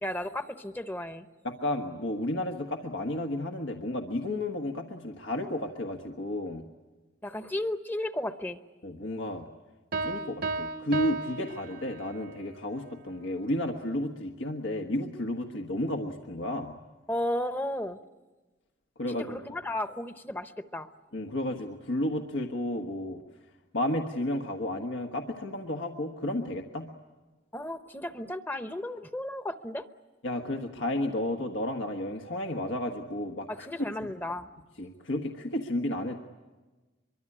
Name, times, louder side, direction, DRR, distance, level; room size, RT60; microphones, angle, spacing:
voice 1, 0.0-1.3 7.2-8.6 17.1-18.0 19.1-20.9 27.5-29.9 33.5-34.5, left 1 dB, 10° left, 10 dB, 0.8 m, -34 dB
voice 2, 1.4-6.7 8.8-9.4 10.0-16.7 19.0-19.4 21.1-23.2 23.7-26.9 30.2-33.7 34.8-36.2, left 1 dB, 90° left, 4 dB, 1.4 m, -32 dB
Piano, 9.9-12.3, right 3 dB, 55° right, 0.8 m, -34 dB
24.0 x 23.5 x 9.8 m, 1.2 s
head